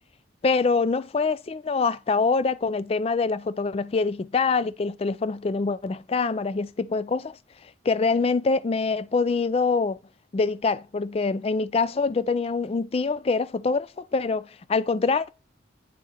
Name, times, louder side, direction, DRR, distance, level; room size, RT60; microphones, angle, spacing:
voice 1, 0.4-7.4 7.9-10.0 10.3-15.3, left 4 dB, 30° left, 0.3 m, -25 dB
9.0 x 6.1 x 2.9 m
head